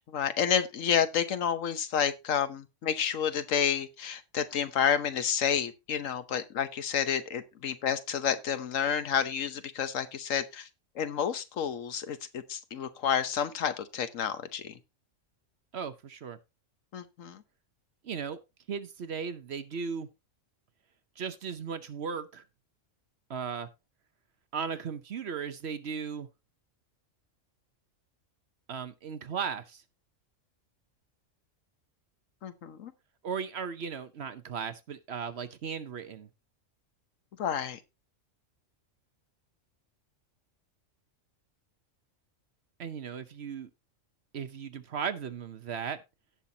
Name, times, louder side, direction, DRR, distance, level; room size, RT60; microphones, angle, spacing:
voice 1, 0.0-10.7 10.9-14.8 16.9-17.4 32.4-32.9 37.4-37.8, left 8 dB, 85° left, 1.3 m, -30 dB
voice 2, 15.7-16.4 18.0-18.4 18.7-20.1 21.2-22.4 23.3-23.7 24.5-26.3 28.7-29.8 33.2-36.3 42.8-43.7 44.3-46.0, right 6 dB, 60° right, 1.0 m, -36 dB
17.0 x 5.7 x 2.8 m
omnidirectional pair, 1.3 m